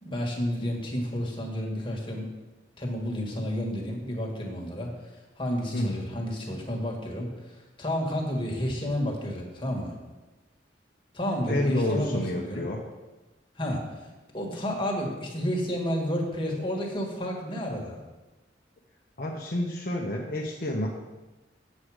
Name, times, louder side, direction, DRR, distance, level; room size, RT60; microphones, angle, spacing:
voice 1, 0.0-2.3 2.8-4.9 5.4-9.9 11.1-12.7 13.6-14.1 14.3-18.0, equal, 30° left, -1 dB, 1.8 m, -31 dB
voice 2, 5.7-6.0 11.5-12.8 19.2-20.9, left 1 dB, 55° left, -1 dB, 0.9 m, -29 dB
8.3 x 7.4 x 5.0 m, 1.1 s
head